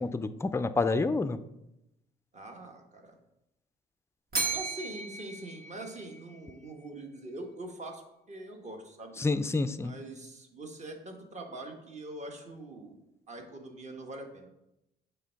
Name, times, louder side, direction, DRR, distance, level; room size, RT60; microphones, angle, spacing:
voice 1, 0.0-1.4 9.2-9.9, left 3 dB, 15° left, 11 dB, 0.4 m, -28 dB
voice 2, 2.3-3.2 4.5-8.0 8.3-9.2 9.8-13.0 13.3-14.5, right 2 dB, 35° right, 3 dB, 1.4 m, -43 dB
Bell, 4.3-6.5, right 4 dB, 50° right, 1.8 m, -35 dB
7.2 x 3.4 x 5.7 m, 0.88 s
cardioid pair, 90°, 20 cm